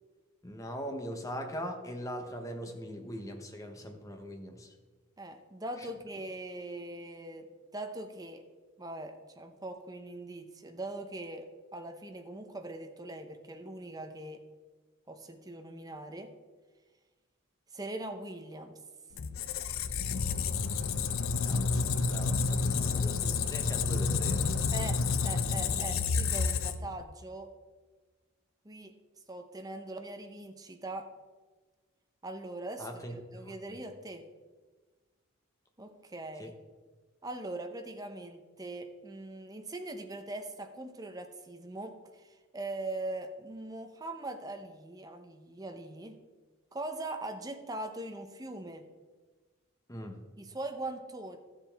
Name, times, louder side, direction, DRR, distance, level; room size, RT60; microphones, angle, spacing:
voice 1, 0.4-4.7 21.4-24.7 32.8-33.2 33.4-33.5 36.4-36.5 49.9-50.2, equal, 15° left, 4 dB, 0.9 m, -41 dB
voice 2, 5.2-7.5 7.7-8.4 8.8-11.5 11.7-14.4 15.1-16.3 17.7-18.8 24.7-27.5 28.6-28.9 29.3-31.1 32.2-34.2 35.8-36.5 37.2-46.2 46.7-48.8 50.4-51.4, right 2 dB, 15° right, 6 dB, 0.7 m, -41 dB
Squeak, 19.2-27.0, left 4 dB, 75° left, 0.5 m, -30 dB
13.5 x 7.3 x 3.4 m, 1.4 s
head